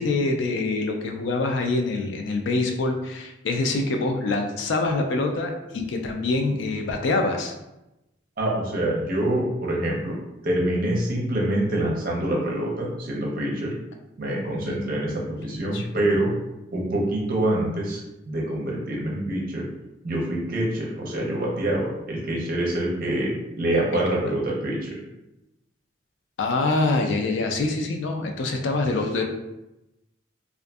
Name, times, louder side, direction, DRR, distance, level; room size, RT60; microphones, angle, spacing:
voice 1, 0.0-7.5 14.6-15.2 15.5-15.8 23.9-24.0 26.4-29.2, left 3 dB, 70° left, 3 dB, 0.4 m, -25 dB
voice 2, 8.4-10.2 10.4-13.7 14.2-16.3 16.7-19.7 20.0-25.0, right 1 dB, 45° right, -3 dB, 0.6 m, -26 dB
2.5 x 2.4 x 2.3 m, 0.94 s
head